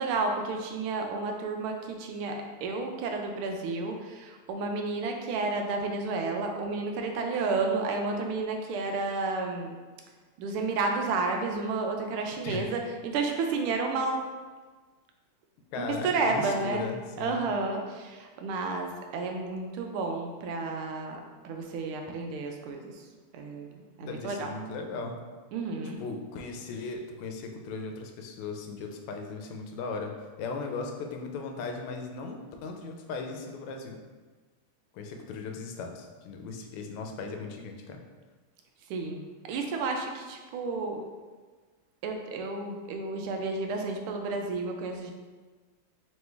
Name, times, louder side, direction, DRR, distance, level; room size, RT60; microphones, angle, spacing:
voice 1, 0.0-9.7 10.4-14.2 15.8-16.8 17.2-23.1 23.3-24.5 25.5-26.0 38.9-41.0 42.0-45.1, right 3 dB, 80° right, 3 dB, 1.4 m, -31 dB
voice 2, 15.7-17.5 24.0-25.2 26.0-30.1 30.4-34.0 34.9-38.0, left 4 dB, 85° left, 3 dB, 1.5 m, -37 dB
3.7 x 3.1 x 3.3 m, 1.4 s
omnidirectional pair, 2.4 m